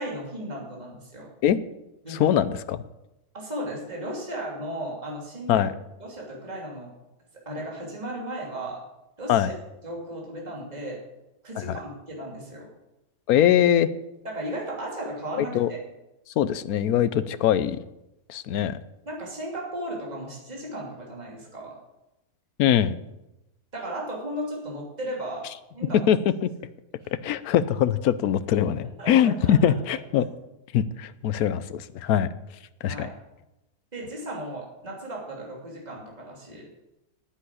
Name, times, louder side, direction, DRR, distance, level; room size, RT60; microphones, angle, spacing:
voice 1, 0.0-1.3 2.0-2.3 3.3-5.6 6.0-6.9 7.4-8.8 9.2-9.5 9.8-11.0 11.4-12.7 14.2-15.8 19.1-21.8 23.7-25.5 25.7-26.1 27.0-27.1 29.0-29.7 32.8-33.1 33.9-36.7, right 1 dB, 25° right, -2 dB, 3.0 m, -35 dB
voice 2, 2.1-2.8 5.5-5.7 9.3-9.5 11.6-11.8 13.3-13.9 15.3-15.7 16.4-17.8 18.3-18.8 22.6-23.0 26.1-26.2 27.2-30.3 30.7-32.3 32.8-33.1, left 10 dB, 75° left, 14 dB, 1.1 m, -22 dB
9.8 x 8.7 x 8.2 m, 0.93 s
omnidirectional pair, 1.6 m